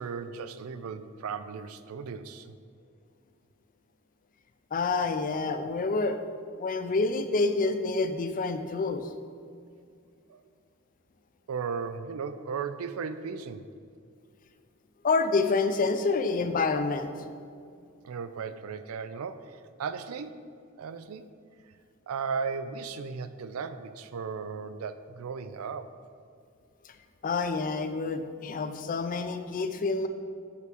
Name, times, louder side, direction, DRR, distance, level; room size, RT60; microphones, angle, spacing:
voice 1, 0.0-2.6 10.3-10.4 11.5-13.7 18.0-20.4 20.8-21.3 22.1-25.9, right 5 dB, 90° right, 12 dB, 0.4 m, -36 dB
voice 2, 4.7-6.2 6.6-9.0 15.0-17.1 27.2-30.1, left 3 dB, 40° left, 9 dB, 0.4 m, -27 dB
5.8 x 4.7 x 6.1 m, 2.3 s
head